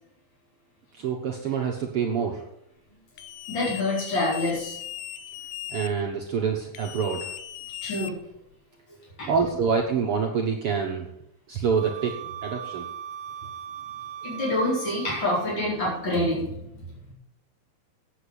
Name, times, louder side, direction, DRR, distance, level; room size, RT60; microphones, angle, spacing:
voice 1, 1.0-2.4 5.7-7.3 9.3-11.1 11.5-12.2 12.4-12.9, right 6 dB, 70° right, 1 dB, 1.4 m, -26 dB
sound 1, 3.2-5.9 6.7-8.5, left 12 dB, 85° left, 2.4 m, -38 dB
voice 2, 3.5-4.8 7.8-8.2 9.2-9.3 14.2-17.1, left 1 dB, 35° left, -5 dB, 4.9 m, -27 dB
Wind instrument woodwind instrument, 11.7-15.8, right 10 dB, 85° right, 2.5 m, -39 dB
8.5 x 8.5 x 8.1 m, 0.80 s
omnidirectional pair, 4.0 m